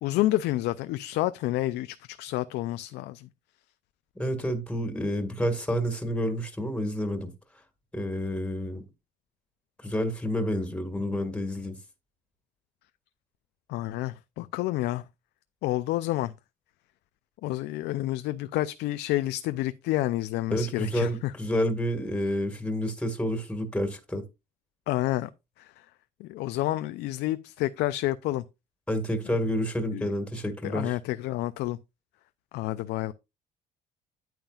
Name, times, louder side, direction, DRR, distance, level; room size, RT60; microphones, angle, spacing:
voice 1, 0.0-3.3 13.7-15.0 15.6-16.3 17.4-21.3 24.9-25.3 25.6-25.8 26.2-28.4 29.3-29.4 29.9-30.0 30.6-31.8 32.5-33.1, left 16 dB, 80° left, 0.5 m, -29 dB
voice 2, 4.2-7.3 7.9-8.8 9.8-11.8 20.5-24.2 28.9-31.0, equal, 5° left, 1.7 m, -29 dB
9.1 x 8.8 x 2.4 m
cardioid pair, 110°, 17 cm